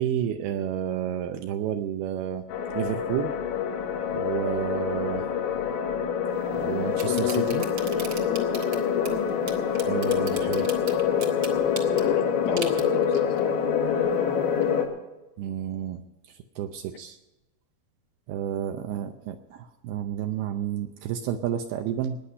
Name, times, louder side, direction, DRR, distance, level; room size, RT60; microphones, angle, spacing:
voice 1, 0.0-2.5 2.7-3.3 4.1-5.2 6.5-7.6 9.9-10.7 15.4-16.0 16.3-17.2 18.3-22.2, right 10 dB, 80° right, 7 dB, 2.4 m, -30 dB
sound 1, 2.5-14.9, left 8 dB, 90° left, 4.3 m, -26 dB
sound 2, 6.3-14.9, right 5 dB, 55° right, 1.5 m, -42 dB
voice 2, 7.0-9.3 11.9-13.6, left 8 dB, 75° left, 3 dB, 2.4 m, -31 dB
19.0 x 9.8 x 5.5 m, 1.0 s
omnidirectional pair, 5.1 m